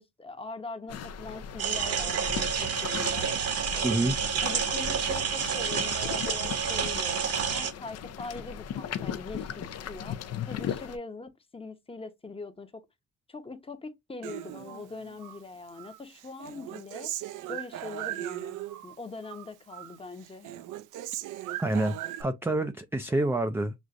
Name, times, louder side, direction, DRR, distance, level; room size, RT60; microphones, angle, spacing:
voice 1, 0.0-3.4 3.7-7.2 7.5-12.9 13.3-17.1 17.5-18.6 18.8-20.5, left 3 dB, 20° left, 0.8 m, -42 dB
sound 1, 0.9-11.0, left 8 dB, 55° left, 0.5 m, -38 dB
sound 2, 1.6-7.7, right 6 dB, 55° right, 0.9 m, -29 dB
voice 2, 3.8-4.1 21.6-23.7, right 2 dB, 10° right, 0.3 m, -27 dB
Human voice, 14.2-15.4 15.8-19.0 19.2-20.0 20.2-22.2, right 13 dB, 85° right, 0.5 m, -38 dB
6.2 x 2.4 x 2.4 m
cardioid pair, 90°, 30 cm